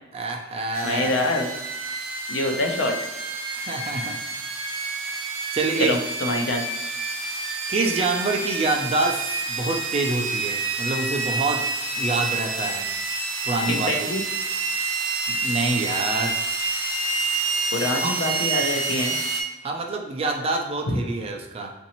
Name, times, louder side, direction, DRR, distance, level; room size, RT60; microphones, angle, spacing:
voice 1, 0.1-1.1 3.5-4.2 5.5-5.9 7.7-11.7 12.0-12.9 13.4-13.9 15.3-16.4 18.0-18.1 19.6-21.7, right 3 dB, 30° right, 2 dB, 0.4 m, -26 dB
sound 1, 0.7-19.4, right 3 dB, 80° right, 0.5 m, -28 dB
voice 2, 0.8-1.5 2.3-2.9 5.8-6.6 13.7-14.2 17.7-19.1 20.9-21.0, left 2 dB, 65° left, 2 dB, 0.6 m, -25 dB
3.9 x 2.6 x 2.9 m, 1.1 s
head